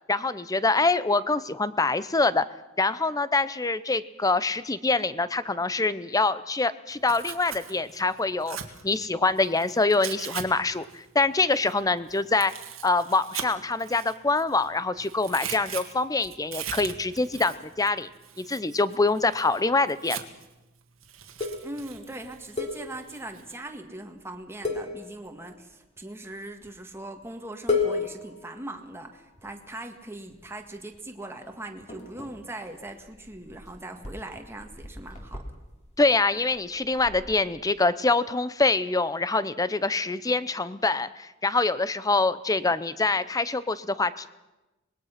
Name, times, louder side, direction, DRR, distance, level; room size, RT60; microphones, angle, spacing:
voice 1, 0.1-2.5 2.8-8.6 8.8-12.5 12.8-18.1 18.4-20.2 36.0-44.3, left 3 dB, 20° left, 15 dB, 0.7 m, -25 dB
Tearing, 6.9-10.4 10.7-14.7 15.0-20.5 21.0-23.6, right 9 dB, 80° right, 1.9 m, -40 dB
sound 1, 21.4-23.4 23.7-23.9 24.2-24.4 24.6-25.7 26.5-27.0 27.2-27.3 27.7-29.7 30.3-31.0 31.2-37.5, left 4 dB, 35° left, 3.3 m, -34 dB
voice 2, 21.6-35.4, right 1 dB, 10° right, 4 dB, 1.8 m, -40 dB
25.0 x 20.5 x 5.9 m, 1.0 s
head